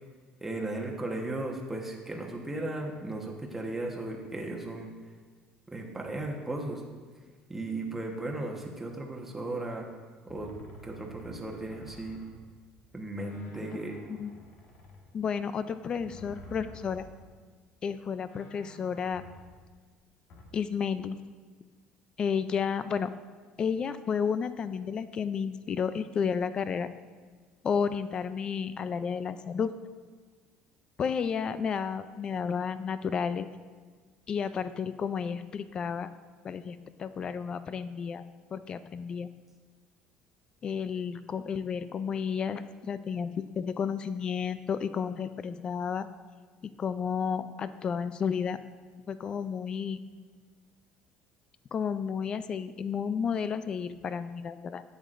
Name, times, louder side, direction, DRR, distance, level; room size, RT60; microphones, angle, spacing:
voice 1, 0.4-4.9 5.7-6.8 7.5-9.9 10.2-10.5 10.8-12.2 12.9-14.0, right 2 dB, 10° right, 0 dB, 1.2 m, -36 dB
sound 1, 10.3-12.9 13.2-17.5 17.8-17.9 18.3-20.4, equal, 60° left, 1.4 m, -51 dB
voice 2, 15.1-17.1 17.8-19.2 20.5-21.2 22.2-23.1 23.6-26.9 27.6-29.7 31.0-33.5 34.3-36.1 36.4-38.2 38.5-39.3 40.6-46.1 46.6-48.6 49.1-50.0 51.7-54.8, left 6 dB, 30° left, 13 dB, 0.4 m, -32 dB
11.5 x 8.2 x 2.6 m, 1.5 s
cardioid pair, 135°, 3 cm